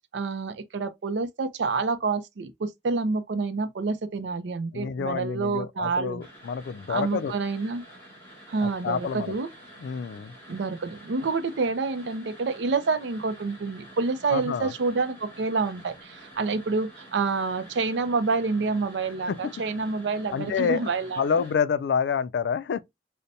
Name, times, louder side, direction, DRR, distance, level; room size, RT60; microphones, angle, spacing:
voice 1, 0.1-6.2 6.9-7.8 8.5-9.5 10.5-21.2, right 4 dB, 85° right, 0.5 m, -28 dB
voice 2, 4.7-7.3 8.6-9.3 9.8-10.3 14.3-14.7 19.3-19.5 20.3-22.8, left 6 dB, 70° left, 0.3 m, -28 dB
sound 1, 6.2-21.5, right 1 dB, 10° left, 2.6 m, -49 dB
5.2 x 2.1 x 2.7 m
head